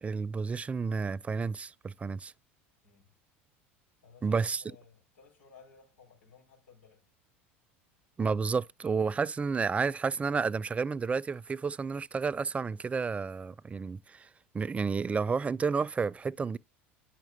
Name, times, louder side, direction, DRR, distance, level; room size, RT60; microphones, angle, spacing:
voice 1, 0.0-2.3 4.2-4.6 8.2-14.3 14.5-16.6, right 5 dB, 20° right, 0.3 m, -31 dB
voice 2, 2.8-3.2 4.0-7.1, left 6 dB, 90° left, 3.9 m, -58 dB
9.2 x 5.9 x 2.6 m
hypercardioid pair, 85°, 7 cm